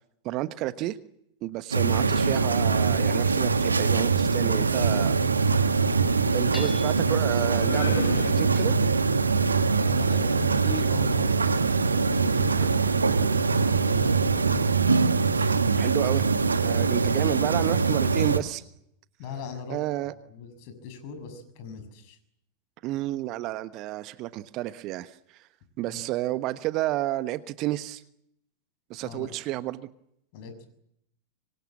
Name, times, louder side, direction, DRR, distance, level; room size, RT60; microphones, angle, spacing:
voice 1, 0.2-1.0 1.4-5.2 6.3-8.8 12.6-12.7 15.4-16.3 16.6-18.7 19.7-20.1 22.8-25.5 25.8-28.0 28.9-29.9, right 16 dB, 40° right, 14 dB, 1.2 m, -31 dB
sound 1, 1.7-18.4, right 4 dB, 75° right, 1.6 m, -23 dB
sound 2, 2.1-2.4 3.7-9.0, left 3 dB, 70° left, 5.3 m, -38 dB
voice 2, 6.1-6.5 9.9-11.5 11.7-14.7 19.2-19.8 20.0-22.2 25.8-26.0 29.0-29.3 30.3-30.7, left 5 dB, 45° left, 10 dB, 6.7 m, -39 dB
Hammer / Chink clink, 6.5-7.3, left 2 dB, 10° left, 7.5 m, -41 dB
25.5 x 24.5 x 7.5 m, 0.76 s
figure-of-eight pair, 90°, 0 cm